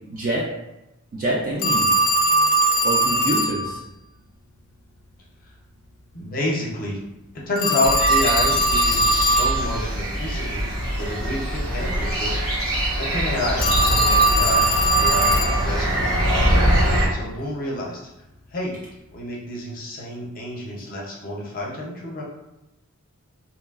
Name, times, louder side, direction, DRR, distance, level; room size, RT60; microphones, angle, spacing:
voice 1, 0.1-0.5 1.1-2.4 2.8-3.8, right 1 dB, 40° right, -5 dB, 0.4 m, -27 dB
Telephone, 1.6-3.6 7.6-9.6 13.6-15.6, right 1 dB, 90° left, 0.4 m, -19 dB
voice 2, 6.1-7.0 7.3-10.6 10.9-13.7 14.0-16.6 17.1-18.0 18.5-18.8 19.1-22.2, left 1 dB, 40° left, -3 dB, 0.6 m, -29 dB
sound 1, 7.8-17.1, equal, 65° right, 0.9 m, -23 dB
2.9 x 2.3 x 2.3 m, 0.95 s
head